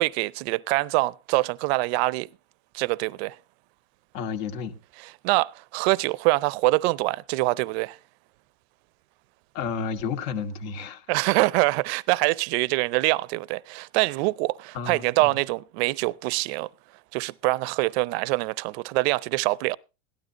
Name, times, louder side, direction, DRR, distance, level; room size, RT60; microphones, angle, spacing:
voice 1, 0.0-2.3 2.7-3.4 5.0-8.0 11.1-16.7 17.1-19.8, right 22 dB, 50° right, 0.6 m, -24 dB
voice 2, 4.1-4.8 9.5-11.1 14.7-15.3, left 6 dB, 55° left, 2.1 m, -31 dB
17.5 x 12.0 x 2.9 m
supercardioid pair, 135°, 40 cm